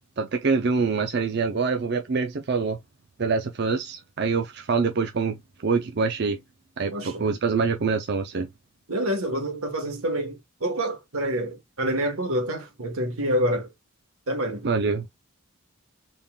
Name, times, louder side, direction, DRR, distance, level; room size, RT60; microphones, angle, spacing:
voice 1, 0.2-2.8 3.2-5.4 5.6-6.4 6.8-8.5 14.6-15.1, right 4 dB, 50° right, 0.5 m, -25 dB
voice 2, 6.9-7.3 8.9-13.7 14.3-14.7, right 1 dB, 90° right, 1.3 m, -27 dB
4.0 x 3.5 x 2.3 m
head